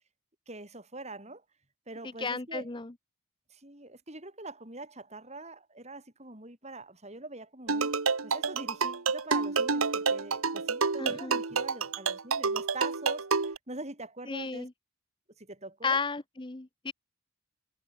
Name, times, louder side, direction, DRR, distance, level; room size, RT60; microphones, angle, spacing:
voice 1, 0.5-1.4 1.9-2.7 3.5-14.7 15.4-16.0, right 2 dB, 30° right, 5.6 m, -44 dB
voice 2, 2.2-2.9 11.0-11.4 14.3-14.7 15.8-16.9, left 4 dB, 20° left, 0.7 m, -33 dB
sound 1, 7.7-13.6, right 4 dB, 75° right, 1.5 m, -29 dB
head